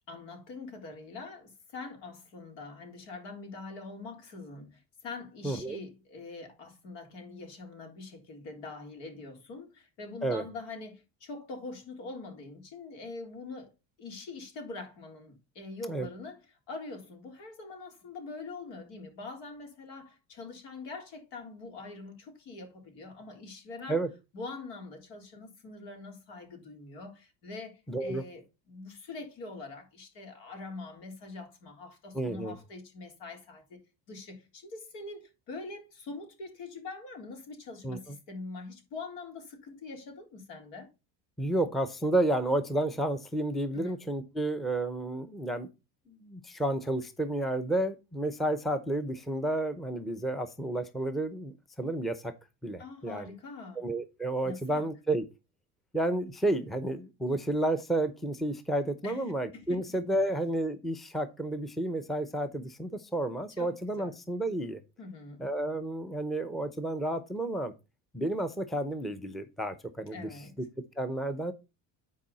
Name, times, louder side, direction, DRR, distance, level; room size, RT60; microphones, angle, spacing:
voice 1, 0.1-13.7 14.0-16.4 16.7-24.0 24.3-33.8 34.1-40.9 43.7-44.0 52.8-53.8 54.4-54.8 59.0-60.3 63.6-64.1 65.0-65.5 70.1-70.5, left 3 dB, 75° left, 3.8 m, -44 dB
voice 2, 5.4-5.8 10.2-10.4 15.9-16.1 23.9-24.1 27.9-28.2 32.1-32.6 37.8-38.0 41.4-45.7 46.1-52.3 52.6-53.3 53.8-55.3 55.9-64.8 65.4-67.7 68.1-70.3 71.0-71.5, right 1 dB, ahead, 0.7 m, -31 dB
10.5 x 4.8 x 4.1 m
cardioid pair, 130°, 43 cm